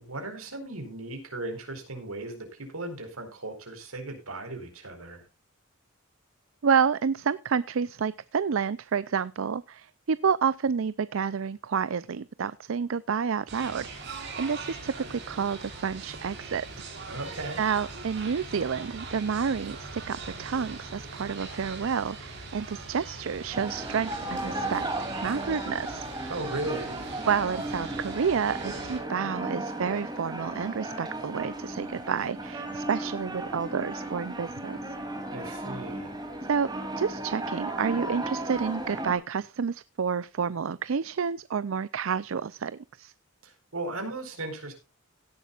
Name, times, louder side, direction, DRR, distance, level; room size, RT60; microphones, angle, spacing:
voice 1, 0.0-5.2 17.1-17.6 26.2-26.9 35.3-36.1 43.4-44.7, right 2 dB, 90° right, 5 dB, 4.6 m, -37 dB
voice 2, 6.6-16.7 17.6-26.1 27.3-34.8 36.5-36.7 37.0-43.1, right 6 dB, 70° right, 17 dB, 0.5 m, -29 dB
sound 1, 13.5-29.0, right 3 dB, 55° right, 4.9 m, -41 dB
sound 2, 23.5-39.1, right 1 dB, 20° right, 2.9 m, -35 dB
17.0 x 11.0 x 2.4 m, 0.29 s
head